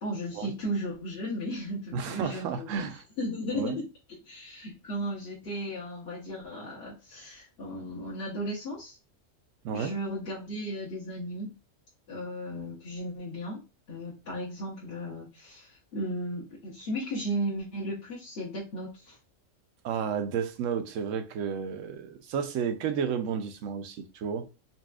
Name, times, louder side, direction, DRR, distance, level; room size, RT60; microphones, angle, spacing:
voice 1, 0.0-3.9 4.2-9.0 9.7-11.5 12.1-19.2, equal, 55° left, 1.1 m, -35 dB
voice 2, 1.9-3.0 3.5-3.8 9.6-9.9 19.8-24.5, right 7 dB, 85° right, 0.9 m, -32 dB
4.1 x 2.3 x 2.3 m
omnidirectional pair, 1.3 m